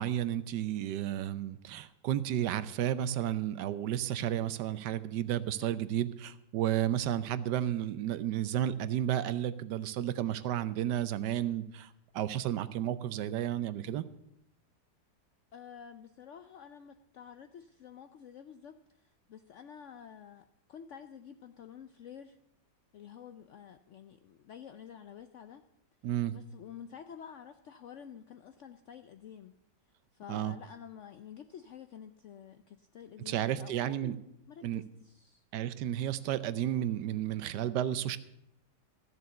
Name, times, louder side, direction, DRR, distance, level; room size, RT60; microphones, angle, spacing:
voice 1, 0.0-14.1 26.0-26.3 30.3-30.5 33.3-34.2 34.6-34.8 35.5-38.2, right 11 dB, 80° right, 14 dB, 1.2 m, -32 dB
voice 2, 15.5-22.4 22.9-25.6 26.3-29.5 30.1-35.4, left 8 dB, 75° left, 9 dB, 0.7 m, -50 dB
14.0 x 6.9 x 7.8 m, 0.80 s
omnidirectional pair, 1.8 m